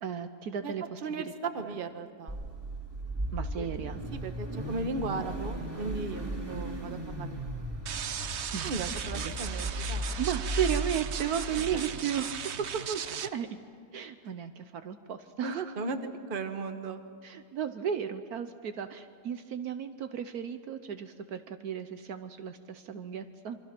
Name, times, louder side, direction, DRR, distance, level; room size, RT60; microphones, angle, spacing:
voice 1, 0.0-1.8 3.3-4.0 8.5-9.3 10.2-13.6 13.9-15.7 17.2-23.6, right 8 dB, 70° right, 9 dB, 1.3 m, -35 dB
voice 2, 1.5-2.4 3.6-3.7 4.1-7.4 8.6-10.1 15.4-17.0, right 3 dB, 35° right, 7 dB, 1.3 m, -36 dB
Car / Idling / Accelerating revving vroom, 2.3-11.7, right 1 dB, 15° right, 2.6 m, -36 dB
sound 1, 7.9-13.3, right 8 dB, 50° right, 0.9 m, -37 dB
28.0 x 24.0 x 6.0 m, 2.1 s
omnidirectional pair, 1.8 m